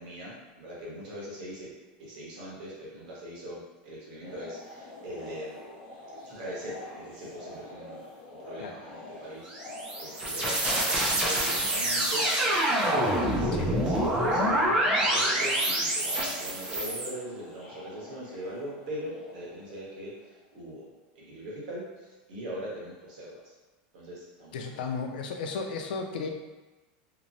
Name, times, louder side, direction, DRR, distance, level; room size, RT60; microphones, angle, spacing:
voice 1, 0.0-1.7 2.0-5.6 6.2-8.0 8.4-20.9 21.1-23.5 23.9-24.9, equal, 65° right, -5 dB, 1.1 m, -41 dB
sound 1, 4.2-20.4, left 2 dB, 25° left, 0.7 m, -46 dB
sound 2, 9.5-17.1, right 1 dB, 20° right, 0.5 m, -26 dB
voice 2, 24.5-26.3, left 4 dB, 85° left, 4 dB, 0.4 m, -34 dB
2.9 x 2.0 x 2.6 m, 1.2 s
supercardioid pair, 165°, 5 cm